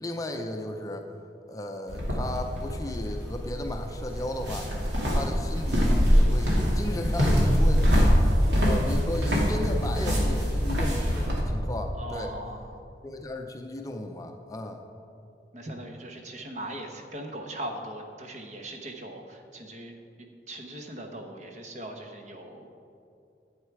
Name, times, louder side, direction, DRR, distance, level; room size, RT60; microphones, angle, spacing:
voice 1, 0.0-1.1 1.5-4.7 5.1-8.1 8.6-12.3 13.0-14.8, left 1 dB, 20° left, 4 dB, 0.5 m, -35 dB
sound 1, 1.9-11.4, equal, 80° right, 2.4 m, -24 dB
voice 2, 12.0-12.7 15.5-19.9 20.5-22.7, right 1 dB, 40° right, 3 dB, 1.1 m, -39 dB
11.5 x 8.2 x 4.7 m, 2.6 s
head